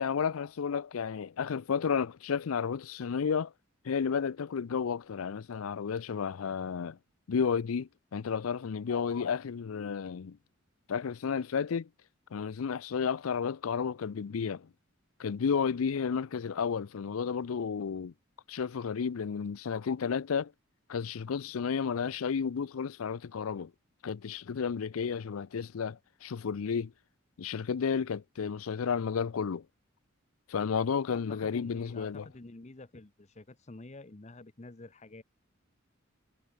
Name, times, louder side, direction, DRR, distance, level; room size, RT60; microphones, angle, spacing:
voice 1, 0.0-3.5 3.8-7.0 7.3-10.4 10.9-11.9 12.3-14.7 15.2-18.1 18.5-20.5 20.9-23.7 24.0-26.9 27.4-29.6 30.5-32.3, left 6 dB, 90° left, 0.5 m, -32 dB
voice 2, 31.1-35.2, left 2 dB, 35° left, 0.9 m, -49 dB
head